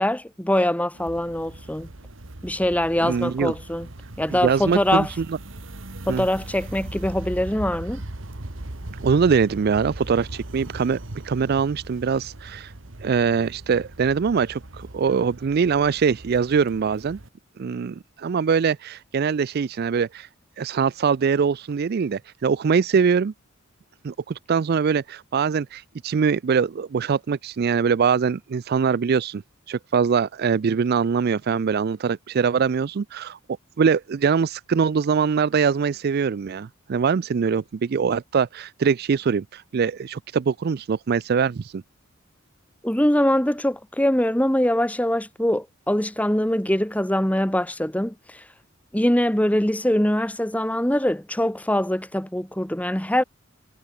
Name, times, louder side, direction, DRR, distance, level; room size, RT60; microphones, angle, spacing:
voice 1, 0.0-1.9 2.4-3.9 4.2-5.1 6.1-8.0 42.8-48.1 48.9-53.2, left 1 dB, 5° left, 1.5 m, -23 dB
sound 1, 0.9-17.3, right 1 dB, 65° right, 1.9 m, -39 dB
voice 2, 3.0-3.5 4.3-5.4 6.1-6.3 8.9-11.0 11.2-12.7 13.0-17.2 17.6-20.3 20.6-23.3 24.0-29.4 29.7-33.4 33.8-41.8, right 6 dB, 50° right, 0.4 m, -23 dB
head